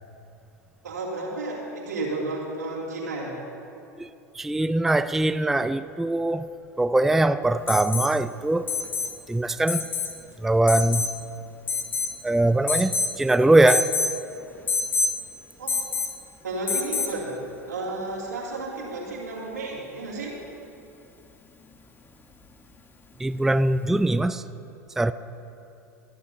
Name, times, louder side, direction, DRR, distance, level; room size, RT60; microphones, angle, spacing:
voice 1, 0.8-3.4 15.6-15.8 16.4-17.4 17.7-20.4, right 2 dB, 85° right, 2.7 m, -32 dB
voice 2, 4.4-6.5 6.8-8.7 9.3-9.9 10.4-11.0 12.2-13.9 23.2-24.4 25.0-25.1, right 2 dB, 5° right, 0.3 m, -22 dB
Alarm, 7.7-8.1 8.7-9.1 9.7-10.1 10.7-11.1 11.7-12.2 12.7-13.2 13.7-14.1 14.7-15.1 15.7-16.2 16.7-17.2 18.9-19.0, left 4 dB, 20° left, 1.2 m, -26 dB
25.0 x 10.5 x 2.8 m
hypercardioid pair, 85°, 9 cm